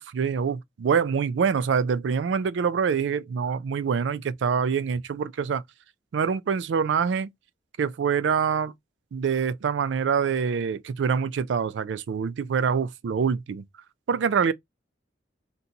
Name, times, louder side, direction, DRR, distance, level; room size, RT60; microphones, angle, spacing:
voice 1, 0.0-5.6 6.1-7.3 7.8-8.7 9.1-13.6 14.1-14.5, right 6 dB, 85° right, 0.4 m, -25 dB
2.8 x 2.2 x 3.8 m
head